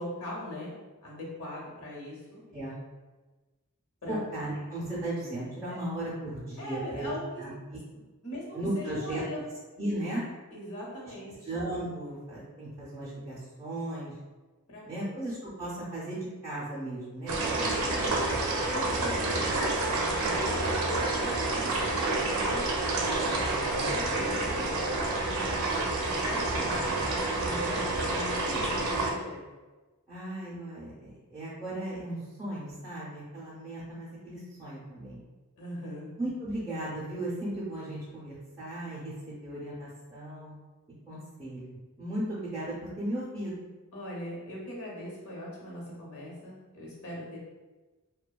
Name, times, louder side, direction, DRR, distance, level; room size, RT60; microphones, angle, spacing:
voice 1, 0.0-2.4 4.0-4.2 5.7-5.8 6.6-7.4 8.2-9.4 10.5-11.5 14.7-15.1 17.4-22.7 23.8-24.7 25.4-29.4 35.6-36.1 43.9-47.4, left 1 dB, 85° left, -3 dB, 0.8 m, -41 dB
voice 2, 4.1-7.5 8.5-9.2 9.8-10.2 11.5-14.1 14.9-18.2 23.0-23.9 27.6-28.2 30.1-35.2 36.2-40.5 41.1-43.6, right 1 dB, 15° right, -10 dB, 0.4 m, -36 dB
sound 1, 17.3-29.1, right 2 dB, 70° right, 0.4 m, -29 dB
2.6 x 2.1 x 2.3 m, 1.2 s
head